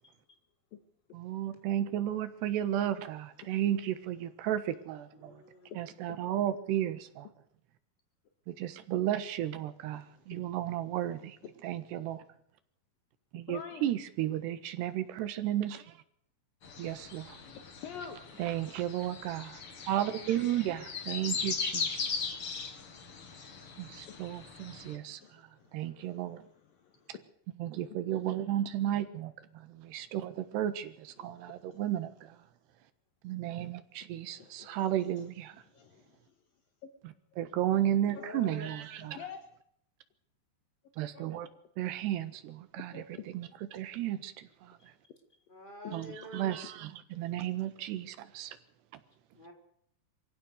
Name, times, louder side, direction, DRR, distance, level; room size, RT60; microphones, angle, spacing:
voice 1, 1.1-5.3 5.8-7.0 8.5-11.4 11.6-12.2 13.3-16.0 16.8-17.3 18.4-19.5 19.9-22.3 23.8-25.4 25.7-26.4 27.6-32.4 33.2-35.6 37.0-39.2 41.0-41.5 41.8-43.0 43.3-44.8 45.9-48.6, right 12 dB, 90° right, 3.6 m, -33 dB
voice 2, 5.1-5.9 38.1-38.7 44.8-44.9 45.5-46.6 49.3-49.5, left 2 dB, 10° left, 4.3 m, -47 dB
voice 3, 13.5-13.8 17.5-18.4 24.1-24.2 25.1-27.2 31.2-31.8 34.2-34.9 35.2-35.3 35.7-36.1 38.1-38.3 39.2-39.4 41.1-41.3 42.9-43.1 45.8-46.0, left 7 dB, 65° left, 3.1 m, -48 dB
sound 1, 16.6-24.9, left 5 dB, 40° left, 2.7 m, -39 dB
25.0 x 16.0 x 6.6 m
omnidirectional pair, 4.7 m